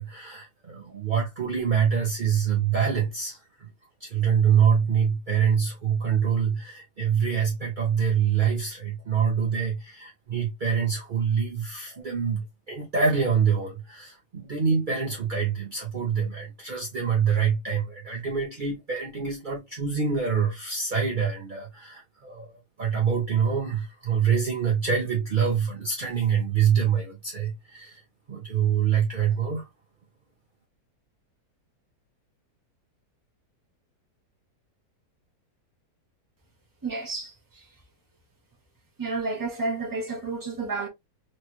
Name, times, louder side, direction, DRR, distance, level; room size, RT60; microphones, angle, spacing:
voice 1, 0.0-3.7 4.0-28.0 28.3-29.7, right 7 dB, 50° right, 0.5 m, -25 dB
voice 2, 36.8-37.8 39.0-40.9, right 3 dB, 15° right, 0.8 m, -31 dB
3.1 x 3.1 x 2.2 m
omnidirectional pair, 1.7 m